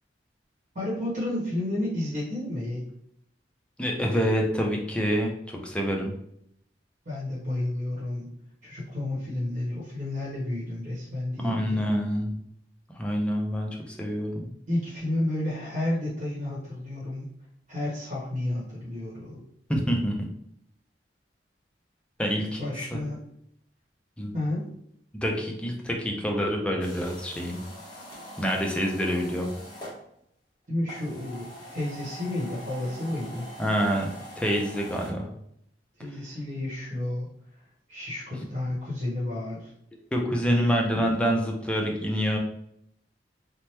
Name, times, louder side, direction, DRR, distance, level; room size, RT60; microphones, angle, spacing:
voice 1, 0.7-2.8 7.0-8.3 8.6-11.9 14.7-17.3 17.7-19.4 22.3-23.2 24.3-24.6 30.7-33.4 36.0-37.3 37.9-39.7 40.4-40.8, left 1 dB, 40° right, -6 dB, 1.0 m, -31 dB
voice 2, 3.8-6.1 11.4-12.4 13.0-14.5 19.7-20.1 22.2-22.6 22.9-23.1 24.2-24.3 25.2-27.6 28.4-29.5 33.6-35.3 40.1-42.4, equal, 5° left, 0 dB, 0.4 m, -27 dB
sound 1, 26.8-30.0 30.8-35.1, equal, 25° left, 0.8 m, -43 dB
2.9 x 2.0 x 3.2 m, 0.73 s
head